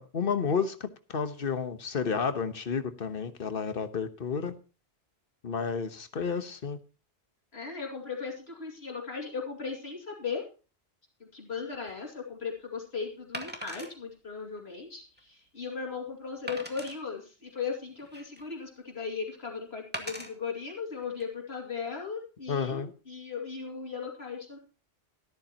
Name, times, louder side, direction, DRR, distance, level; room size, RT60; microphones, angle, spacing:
voice 1, 0.0-4.5 5.4-6.8 22.5-22.9, left 6 dB, 60° left, 10 dB, 1.3 m, -31 dB
voice 2, 7.5-10.4 11.3-24.6, left 5 dB, 75° left, 0 dB, 2.7 m, -37 dB
Wood, 11.7-11.9 13.3-13.9 14.6-14.7 15.2-15.3 16.5-17.0 17.7-18.5 19.9-20.3 21.0-21.2, right 1 dB, 10° right, 2.1 m, -39 dB
13.5 x 13.0 x 2.9 m, 0.35 s
omnidirectional pair, 1.1 m